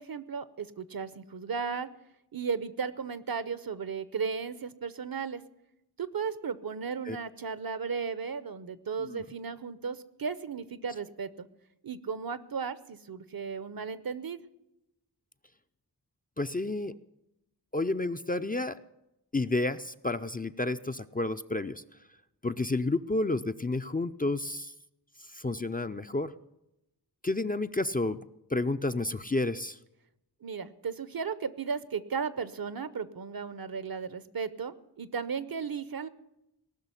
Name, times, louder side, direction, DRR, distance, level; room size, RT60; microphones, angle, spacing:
voice 1, 0.0-1.9 2.3-5.4 6.0-11.5 11.8-14.4 30.4-36.1, right 5 dB, 60° right, 15 dB, 0.8 m, -35 dB
voice 2, 16.4-16.9 17.7-18.8 19.3-21.8 22.4-24.7 25.3-26.3 27.2-28.2 28.5-29.8, left 2 dB, 20° left, 9 dB, 0.4 m, -30 dB
18.5 x 6.3 x 9.7 m, 0.86 s
wide cardioid pair, 85°, 40 cm